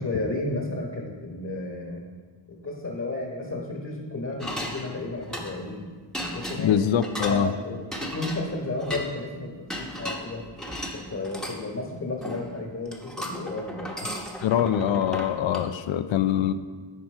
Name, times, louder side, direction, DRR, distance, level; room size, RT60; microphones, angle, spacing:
voice 1, 0.0-2.0 2.5-5.9 6.2-6.7 7.2-10.5 10.9-13.9, left 2 dB, 35° left, 0 dB, 1.3 m, -33 dB
sound 1, 4.4-5.7 6.1-7.4 7.9-9.1 9.7-11.6 12.2-12.6 12.8-15.7, equal, ahead, 1.1 m, -35 dB
voice 2, 6.6-7.5 14.4-16.5, left 9 dB, 85° left, 11 dB, 0.5 m, -23 dB
10.0 x 4.4 x 4.4 m, 1.5 s
cardioid pair, 65°, 45 cm